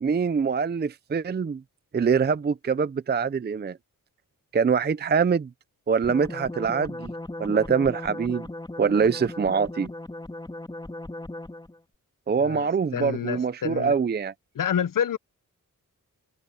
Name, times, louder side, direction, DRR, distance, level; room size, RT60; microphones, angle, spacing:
voice 1, 0.0-1.6 1.9-3.8 4.5-5.5 5.9-7.1 7.4-8.5 8.8-9.9 12.3-14.3, right 6 dB, 30° right, 0.5 m, -24 dB
sound 1, 6.0-11.8, left 1 dB, 15° left, 2.8 m, -37 dB
voice 2, 12.4-14.0 14.5-15.2, left 8 dB, 75° left, 0.8 m, -28 dB
open air
wide cardioid pair, 130°, 33 cm